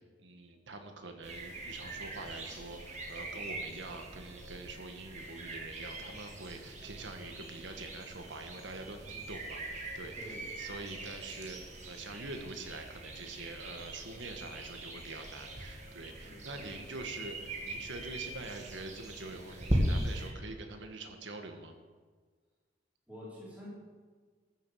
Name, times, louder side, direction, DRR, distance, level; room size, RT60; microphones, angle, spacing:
voice 1, 0.2-11.6 11.9-21.8, right 3 dB, 85° right, 5 dB, 1.6 m, -45 dB
sound 1, 1.2-20.3, right 1 dB, 40° right, 2.0 m, -40 dB
voice 2, 10.2-10.5 16.2-17.0 23.1-23.7, equal, 10° right, -8 dB, 4.0 m, -49 dB
14.0 x 7.4 x 6.4 m, 1.5 s
head